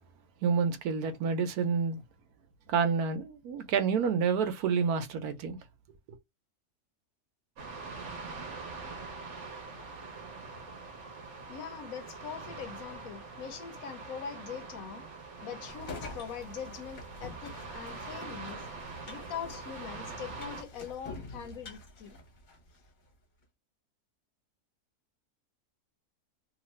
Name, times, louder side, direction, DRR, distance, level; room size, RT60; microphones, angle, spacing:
voice 1, 0.4-2.0 2.7-5.6 6.1-6.2, right 6 dB, 75° right, 1.1 m, -28 dB
sound 1, 7.6-20.6, right 3 dB, 55° right, 1.0 m, -44 dB
voice 2, 11.5-15.1 15.4-18.7 19.1-22.2, left 7 dB, 70° left, 0.9 m, -42 dB
sound 2, 15.7-22.9, left 2 dB, 40° left, 0.8 m, -47 dB
2.8 x 2.5 x 3.0 m
omnidirectional pair, 1.6 m